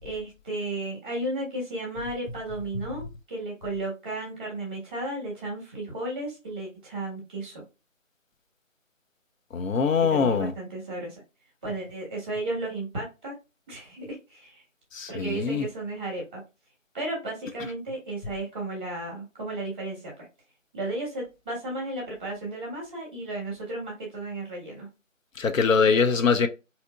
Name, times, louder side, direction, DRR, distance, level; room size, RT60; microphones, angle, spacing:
voice 1, 0.0-7.6 10.0-11.2 11.6-13.3 13.7-14.6 15.1-16.4 16.9-20.1 20.7-24.9, right 2 dB, 5° right, 0.8 m, -34 dB
voice 2, 9.5-10.5 14.9-15.6 25.4-26.5, left 5 dB, 75° left, 0.6 m, -22 dB
3.9 x 2.8 x 2.3 m
figure-of-eight pair, 165°, 40 cm